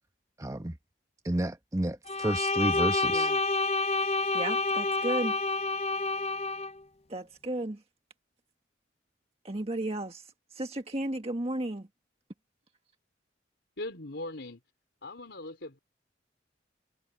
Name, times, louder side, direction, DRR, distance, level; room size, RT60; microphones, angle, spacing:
voice 1, 0.4-0.8 1.2-3.3, right 1 dB, 15° right, 1.0 m, -31 dB
Bowed string instrument, 2.1-6.7, left 3 dB, 35° left, 0.6 m, -28 dB
voice 2, 3.1-3.4 4.3-5.4 7.1-7.8 9.4-10.2 10.5-11.9, right 1 dB, 35° right, 1.6 m, -33 dB
voice 3, 13.8-14.6 15.0-15.8, left 2 dB, 70° left, 3.7 m, -39 dB
head